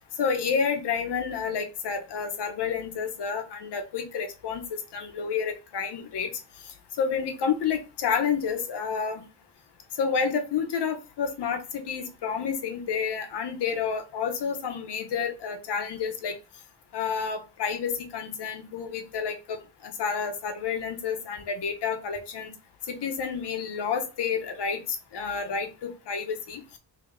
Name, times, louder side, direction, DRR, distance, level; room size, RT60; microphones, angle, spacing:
voice 1, 0.2-4.6 4.9-6.3 7.0-9.2 10.0-16.3 16.9-22.5 22.9-24.8 25.1-26.8, left 6 dB, 75° left, 6 dB, 0.8 m, -29 dB
5.2 x 2.8 x 2.5 m, 0.32 s
wide cardioid pair, 175°, 42 cm